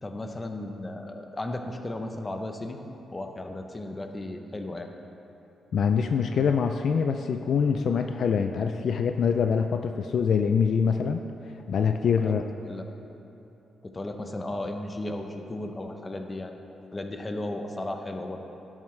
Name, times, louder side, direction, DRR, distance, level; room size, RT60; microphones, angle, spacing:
voice 1, 0.0-2.8 3.1-4.9 12.2-12.4 12.6-12.8 13.8-16.5 16.9-18.4, left 1 dB, 15° left, 4 dB, 0.6 m, -35 dB
voice 2, 5.7-11.2 11.7-12.4, left 6 dB, 50° left, 6 dB, 0.3 m, -24 dB
17.0 x 7.3 x 3.2 m, 3.0 s
wide cardioid pair, 170°, 0 cm